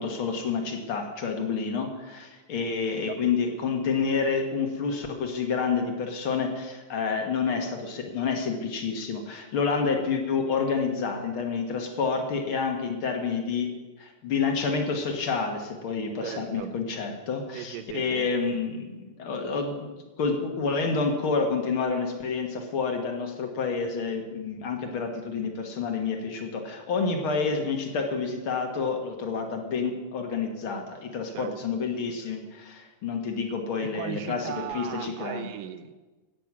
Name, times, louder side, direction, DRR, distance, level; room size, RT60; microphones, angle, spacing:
voice 1, 0.0-13.7 14.0-19.9 20.2-35.5, left 5 dB, 55° left, 3 dB, 1.6 m, -29 dB
voice 2, 16.2-16.7 17.5-18.3 31.3-31.8 33.9-36.0, right 10 dB, 80° right, 10 dB, 2.3 m, -37 dB
15.0 x 9.1 x 6.0 m, 1.2 s
omnidirectional pair, 4.0 m